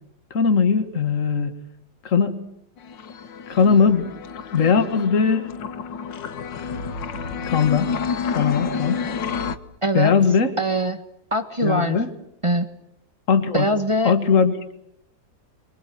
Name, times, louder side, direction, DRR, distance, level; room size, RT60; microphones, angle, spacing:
voice 1, 0.3-1.5 2.0-2.5 3.5-4.1 4.5-5.4 7.4-7.9 8.3-9.0 9.9-10.5 11.6-12.1 13.3-13.7 14.0-14.5, left 6 dB, 45° left, 9 dB, 2.1 m, -19 dB
sound 1, 2.8-9.6, left 6 dB, 75° left, 1.9 m, -29 dB
voice 2, 9.8-10.1 10.6-11.0 11.3-12.0 12.4-12.7 13.5-14.1, right 1 dB, 20° right, 8 dB, 1.3 m, -22 dB
28.0 x 24.5 x 7.7 m, 0.78 s
omnidirectional pair, 2.0 m